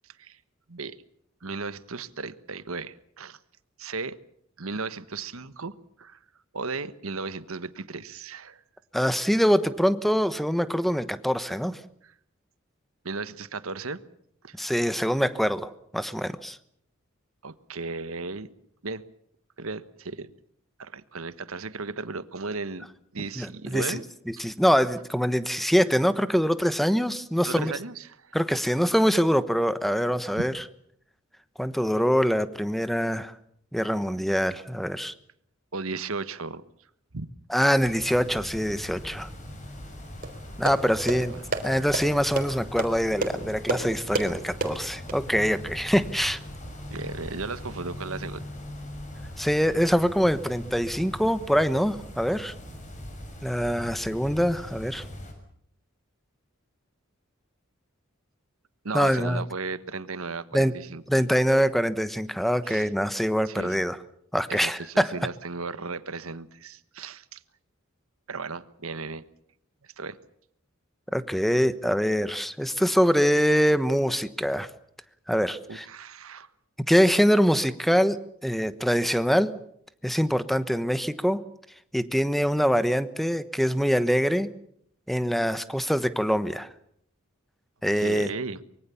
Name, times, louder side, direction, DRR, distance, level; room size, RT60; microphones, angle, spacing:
voice 1, 1.4-3.4 3.8-4.2 4.6-6.2 6.5-8.6 12.0-12.1 13.0-14.0 14.4-14.7 17.4-18.5 18.8-19.0 19.6-20.3 20.8-22.9 23.1-24.0 24.4-24.5 27.4-28.3 30.4-30.5 35.7-36.6 37.1-37.3 41.1-41.4 46.9-48.4 58.8-61.0 62.6-62.9 63.4-63.8 64.5-67.4 68.3-69.2 69.8-70.2 75.7-76.5 87.9-88.6, right 4 dB, 80° right, 14 dB, 1.3 m, -35 dB
voice 2, 8.9-11.8 14.6-16.6 23.4-24.0 24.4-27.7 28.3-30.5 31.6-33.3 33.7-35.1 37.5-39.3 40.6-41.3 41.6-46.4 49.4-52.5 53.4-55.0 58.9-59.4 60.5-60.7 61.1-64.0 64.3-65.1 71.1-74.7 75.3-75.9 76.9-79.5 80.0-81.4 81.9-84.5 85.1-86.7 87.8-88.3, equal, ahead, 13 dB, 1.1 m, -24 dB
sound 1, 37.8-55.3, left 1 dB, 35° left, 6.2 m, -41 dB
sound 2, 40.2-45.2, right 2 dB, 45° right, 3.7 m, -32 dB
25.0 x 23.0 x 7.1 m, 0.68 s
head